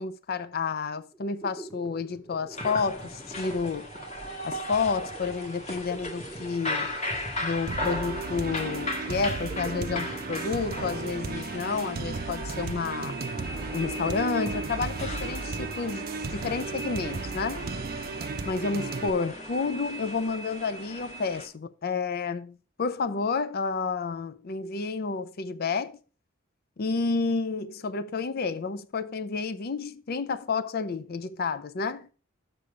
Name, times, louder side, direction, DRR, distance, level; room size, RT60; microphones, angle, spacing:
voice 1, 0.0-3.9 4.4-6.9 7.4-13.1 13.7-16.0 16.3-17.7 18.5-26.0 26.8-32.1, left 4 dB, 50° left, 0.5 m, -30 dB
sound 1, 1.1-11.9, right 1 dB, 10° left, 1.0 m, -45 dB
sound 2, 2.5-21.5, left 1 dB, 35° left, 1.8 m, -37 dB
sound 3, 7.7-19.1, right 4 dB, 50° right, 0.6 m, -35 dB
6.9 x 6.9 x 4.9 m
head